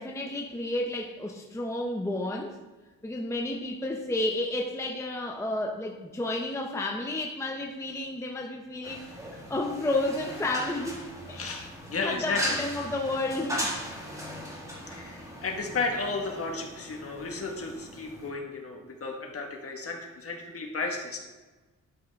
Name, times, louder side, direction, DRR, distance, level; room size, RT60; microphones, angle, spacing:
voice 1, 0.0-2.6 3.0-11.4 12.0-13.7, left 2 dB, 10° left, 2 dB, 0.6 m, -31 dB
sound 1, 8.8-18.3, equal, 10° right, 1.9 m, -38 dB
voice 2, 11.4-12.6 14.9-21.2, left 3 dB, 45° left, 1 dB, 1.5 m, -33 dB
12.0 x 5.4 x 3.5 m, 1.2 s
wide cardioid pair, 140°, 33 cm